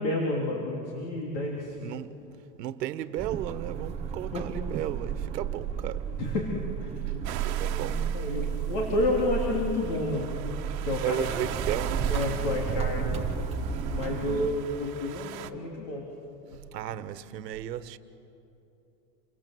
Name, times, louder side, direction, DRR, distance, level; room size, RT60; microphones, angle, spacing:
voice 1, 0.0-1.8 4.3-4.4 6.2-6.5 6.8-10.3 10.8-11.2 12.1-13.3 13.9-16.0, left 2 dB, 45° left, 3.7 m, -30 dB
voice 2, 1.8-2.1 2.6-6.0 7.1-8.0 11.0-12.1 16.7-18.0, right 12 dB, 85° right, 1.5 m, -34 dB
sound 1, 3.2-14.5, right 7 dB, 15° right, 0.9 m, -32 dB
sound 2, 7.2-15.5, right 12 dB, 60° right, 1.5 m, -41 dB
29.0 x 25.5 x 7.8 m
supercardioid pair, 170°, 48 cm